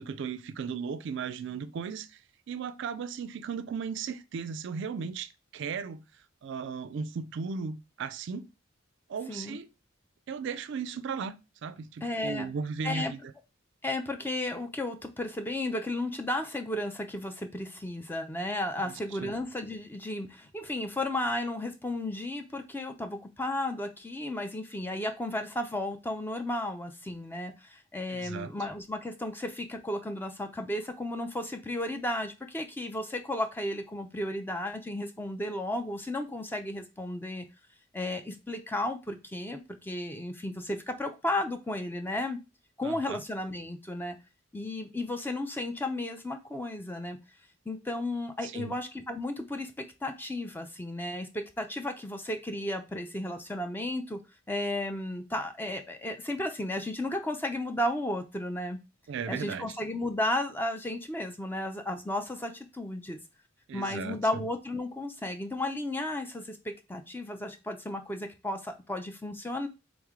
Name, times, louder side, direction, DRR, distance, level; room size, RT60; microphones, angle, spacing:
voice 1, 0.0-2.1 2.5-6.1 6.4-8.5 9.1-9.7 10.3-11.3 11.6-13.2 18.8-18.9 19.2-19.3 28.1-28.5 42.8-43.2 48.4-48.7 59.1-59.7 63.7-64.2, right 5 dB, 60° right, 0.3 m, -36 dB
voice 2, 9.3-9.6 12.0-12.5 12.8-13.1 13.8-37.5 37.9-42.4 42.8-44.2 44.5-47.2 47.7-54.2 54.5-58.8 59.3-63.2 63.7-69.7, left 1 dB, 10° left, 0.4 m, -34 dB
3.5 x 3.1 x 3.6 m
head